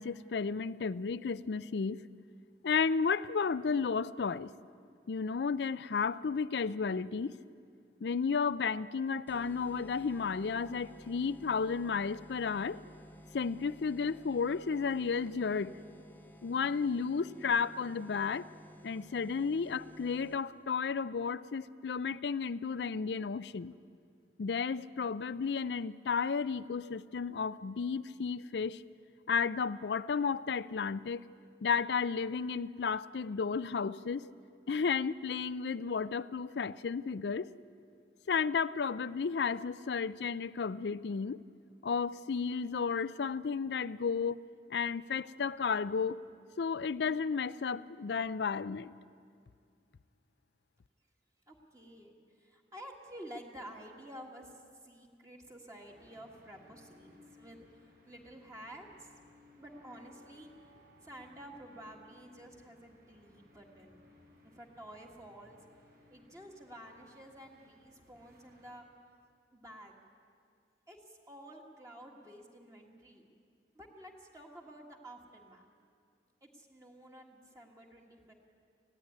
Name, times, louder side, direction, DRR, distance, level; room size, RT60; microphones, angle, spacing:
voice 1, 0.0-2.0 2.6-4.5 5.1-7.3 8.0-12.8 13.3-15.8 16.4-18.5 18.8-23.7 24.4-28.8 29.3-31.2 31.6-34.3 34.7-37.5 38.3-41.4 41.8-44.4 44.7-46.2 46.6-48.9, left 5 dB, 70° left, 0.4 m, -33 dB
sound 1, 9.3-20.7, left 1 dB, 10° left, 0.7 m, -55 dB
voice 2, 51.5-57.6 58.0-59.1 59.6-60.5 61.0-64.1 64.4-65.6 66.1-68.8 69.5-69.9 70.9-73.3 73.7-75.6 76.4-78.3, equal, 20° right, 1.7 m, -51 dB
sound 2, 55.9-68.7, left 2 dB, 55° right, 5.6 m, -62 dB
19.5 x 15.5 x 9.3 m
head